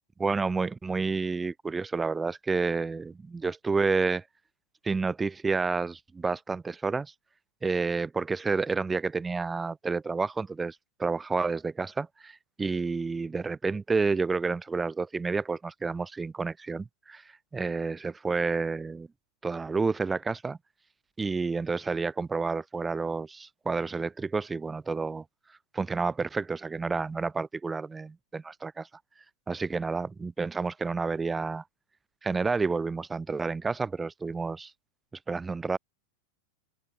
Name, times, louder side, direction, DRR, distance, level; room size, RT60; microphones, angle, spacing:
voice 1, 0.2-4.2 4.8-7.1 7.6-17.2 17.5-19.1 19.4-20.6 21.2-25.2 25.7-28.9 29.5-31.6 32.2-34.7 35.3-35.8, right 4 dB, 10° right, 0.8 m, -30 dB
open air
figure-of-eight pair, 90°, 0 cm